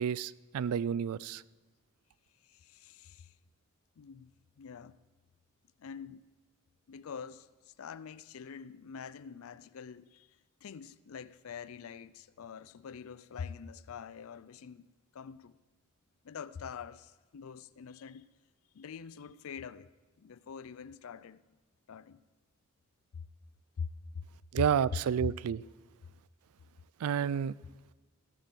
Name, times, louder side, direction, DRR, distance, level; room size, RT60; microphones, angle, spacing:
voice 1, 0.0-1.4 24.5-25.6 27.0-27.5, right 8 dB, 90° right, 0.3 m, -30 dB
voice 2, 2.4-3.3 4.0-4.3 4.6-5.0 5.8-6.3 6.9-10.3 10.6-15.6 16.2-18.3 18.7-19.9 20.2-21.4 21.9-22.2 23.1-23.3 23.8-24.2 24.6-24.7 25.2-25.3, left 6 dB, 70° left, 0.4 m, -44 dB
16.0 x 6.7 x 7.5 m
head